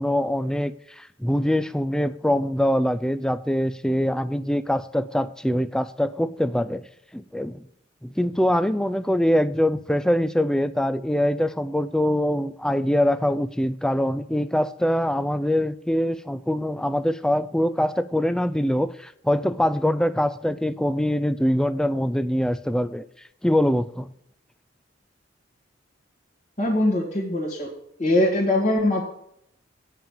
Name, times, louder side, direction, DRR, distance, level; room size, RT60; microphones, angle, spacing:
voice 1, 0.0-6.8 7.1-7.6 8.0-23.0 23.4-24.1, equal, 5° left, 13 dB, 0.3 m, -23 dB
voice 2, 26.6-27.7 28.0-29.0, left 1 dB, 40° left, -6 dB, 1.9 m, -22 dB
9.0 x 5.8 x 7.0 m, 0.72 s
head